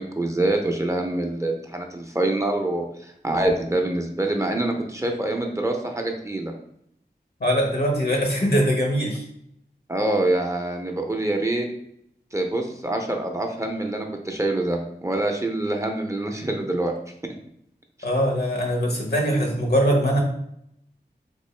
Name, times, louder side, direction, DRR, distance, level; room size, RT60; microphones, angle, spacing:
voice 1, 0.0-6.5 9.9-11.7 12.3-16.9, right 2 dB, 15° right, 2 dB, 0.5 m, -25 dB
voice 2, 7.4-9.2 18.0-20.2, equal, 70° left, 0 dB, 1.0 m, -22 dB
3.6 x 2.4 x 3.2 m, 0.73 s
wide cardioid pair, 50°, 17 cm